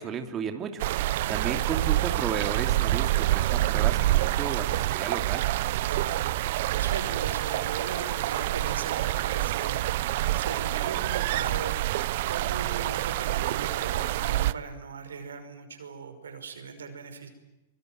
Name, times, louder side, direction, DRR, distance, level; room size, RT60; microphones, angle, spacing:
voice 1, 0.0-5.4, right 7 dB, 30° right, 5 dB, 2.7 m, -34 dB
sound 1, 0.8-14.5, right 15 dB, 60° right, 0.9 m, -27 dB
voice 2, 1.1-1.4 5.8-11.9 12.3-17.3, right 5 dB, 90° right, 8 dB, 5.8 m, -39 dB
25.0 x 24.0 x 9.5 m, 1.0 s
hypercardioid pair, 120°, 0 cm